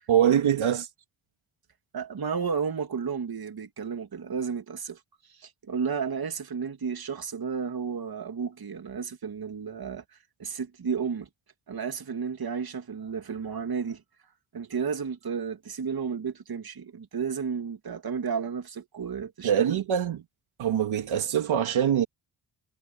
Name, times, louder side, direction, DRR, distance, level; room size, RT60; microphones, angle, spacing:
voice 1, 0.1-0.9 19.4-20.2 20.6-22.1, right 9 dB, 75° right, 2.5 m, -23 dB
voice 2, 1.9-5.0 5.4-10.0 10.4-11.3 11.7-14.0 14.5-19.5, right 6 dB, 50° right, 2.5 m, -32 dB
cardioid pair, 65°, 48 cm